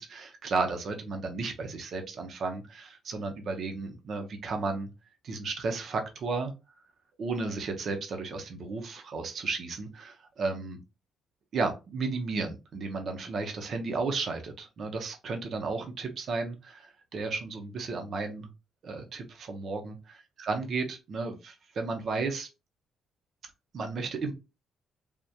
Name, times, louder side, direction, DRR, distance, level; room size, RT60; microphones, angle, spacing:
voice 1, 0.0-4.9 5.2-6.5 7.2-10.8 11.5-18.5 18.8-22.5 23.7-24.3, right 4 dB, 60° right, 4 dB, 0.8 m, -33 dB
3.6 x 2.4 x 2.8 m, 0.27 s
cardioid pair, 90°, 0 cm